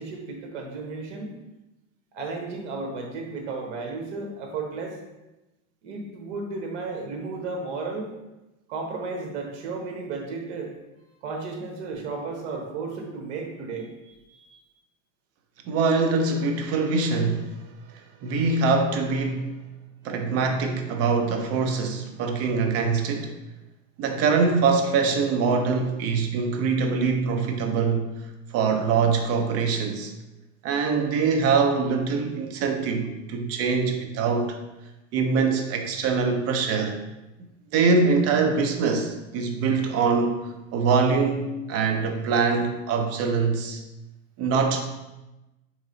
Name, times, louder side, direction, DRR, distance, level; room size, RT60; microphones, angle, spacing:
voice 1, 0.0-1.3 2.1-5.0 5.8-8.1 8.7-10.7 11.2-14.6, right 3 dB, 70° right, 1 dB, 1.2 m, -34 dB
voice 2, 15.7-17.6 17.9-19.5 20.0-23.3 24.0-28.1 28.5-30.1 30.6-34.6 35.1-37.0 37.7-40.4 40.7-43.8 44.4-44.8, right 4 dB, 40° right, 5 dB, 0.7 m, -23 dB
3.7 x 3.0 x 3.9 m, 1.0 s
supercardioid pair, 130°, 35 cm